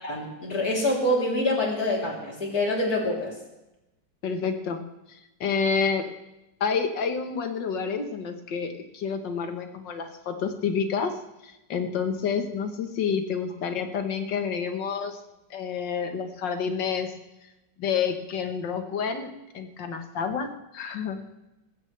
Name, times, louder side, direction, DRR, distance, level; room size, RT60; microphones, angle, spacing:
voice 1, 0.0-3.3, left 1 dB, 55° left, -2 dB, 4.0 m, -26 dB
voice 2, 4.2-4.8 5.1-6.1 6.6-11.2 11.4-15.2 15.5-17.1 17.8-21.2, left 6 dB, 90° left, 6 dB, 2.0 m, -29 dB
20.0 x 15.5 x 3.4 m, 0.96 s
omnidirectional pair, 1.9 m